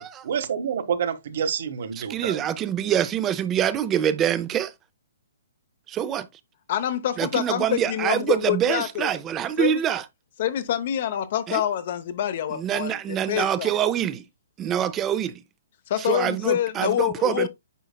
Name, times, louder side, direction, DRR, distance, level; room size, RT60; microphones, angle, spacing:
voice 1, 0.0-2.5, right 7 dB, 55° right, 1.4 m, -28 dB
voice 2, 2.1-4.7 5.9-6.3 7.2-10.0 11.5-11.6 12.5-14.2 14.6-15.4 16.0-17.5, right 10 dB, 15° right, 0.5 m, -25 dB
voice 3, 6.7-9.1 9.6-9.8 10.4-13.7 15.9-17.5, left 11 dB, 45° left, 0.7 m, -26 dB
9.1 x 5.5 x 2.2 m
hypercardioid pair, 165°, 0 cm